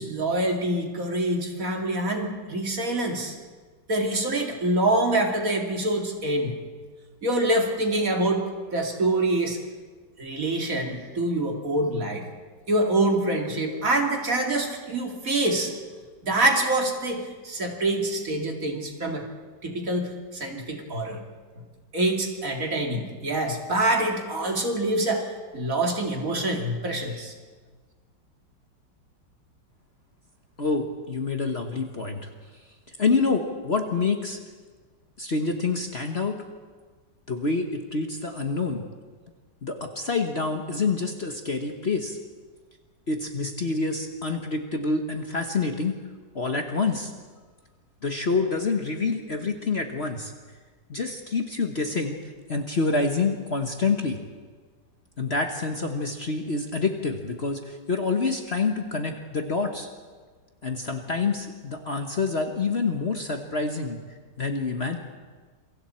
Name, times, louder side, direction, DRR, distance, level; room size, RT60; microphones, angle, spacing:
voice 1, 0.0-3.3 3.9-6.6 7.2-8.5 8.7-9.6 10.2-12.3 12.7-15.7 16.2-19.3 19.6-21.2 21.6-21.7 21.9-25.3 25.5-27.3, right 1 dB, 50° right, 2 dB, 2.9 m, -25 dB
voice 2, 30.6-32.3 32.9-34.4 35.2-36.4 37.3-38.8 39.6-42.2 43.1-46.0 46.3-47.1 48.0-50.3 50.9-52.2 52.5-54.2 55.2-59.9 60.6-64.0 64.4-65.0, left 4 dB, 40° left, 4 dB, 1.3 m, -27 dB
27.5 x 24.0 x 4.5 m, 1.5 s
omnidirectional pair, 1.9 m